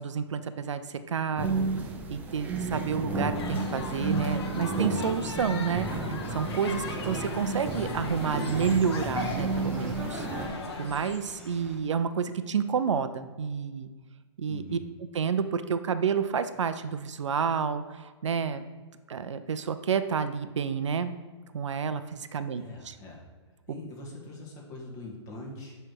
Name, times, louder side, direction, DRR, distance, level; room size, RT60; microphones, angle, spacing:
voice 1, 0.0-1.7 2.1-10.3 10.8-13.9 14.4-14.8 15.1-18.6 19.1-21.1 21.5-22.9, right 6 dB, 90° right, 11 dB, 0.5 m, -30 dB
sound 1, 1.4-10.5, right 3 dB, 10° right, 0.6 m, -32 dB
sound 2, 3.3-11.1, left 3 dB, 60° left, 1.2 m, -38 dB
sound 3, 6.7-11.8, equal, 5° left, 0.9 m, -49 dB
voice 2, 14.5-14.8 22.6-23.2 23.7-25.8, left 2 dB, 30° left, -2 dB, 1.8 m, -43 dB
9.6 x 3.4 x 4.6 m, 1.4 s
hypercardioid pair, 145°, 15 cm